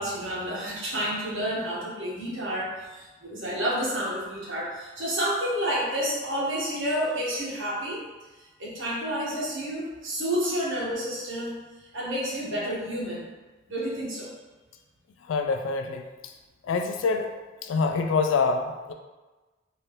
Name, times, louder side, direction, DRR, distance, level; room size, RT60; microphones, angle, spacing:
voice 1, 0.0-8.0 8.6-11.6 11.9-13.3 13.7-14.3, equal, 80° right, -6 dB, 1.3 m, -30 dB
voice 2, 15.2-16.3 16.6-17.3 17.6-18.9, left 4 dB, 80° left, 5 dB, 0.3 m, -26 dB
3.6 x 2.9 x 3.1 m, 1.2 s
head